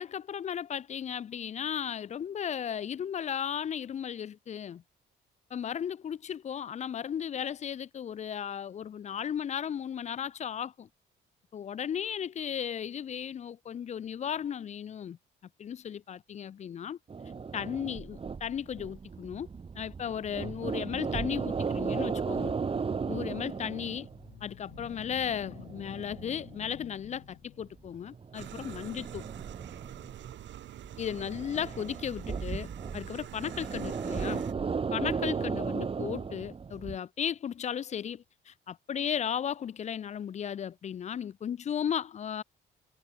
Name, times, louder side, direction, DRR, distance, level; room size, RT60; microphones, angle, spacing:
voice 1, 0.0-4.8 5.5-10.9 11.5-15.2 15.6-17.0 17.5-19.5 19.8-22.5 23.1-24.1 24.4-29.3 31.0-34.5 34.9-42.4, left 8 dB, 35° left, 0.4 m, -35 dB
sound 1, 17.1-24.4 24.7-27.1 27.6-30.4 30.8-37.0, right 5 dB, 30° right, 0.8 m, -36 dB
sound 2, 23.8-28.2, left 14 dB, 85° left, 2.0 m, -51 dB
sound 3, 28.3-34.5, right 12 dB, 65° right, 0.8 m, -45 dB
cardioid pair, 90°, 20 cm